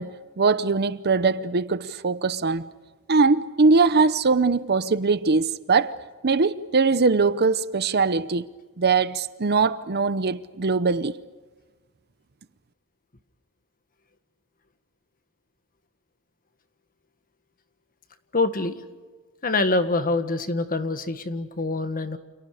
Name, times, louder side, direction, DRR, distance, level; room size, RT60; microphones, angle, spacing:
voice 1, 0.0-2.7 3.1-5.9 6.2-8.4 8.8-11.1, right 4 dB, 45° right, 0.8 m, -21 dB
voice 2, 18.3-18.8 19.4-22.2, left 3 dB, 40° left, 1.7 m, -25 dB
30.0 x 28.5 x 5.0 m
head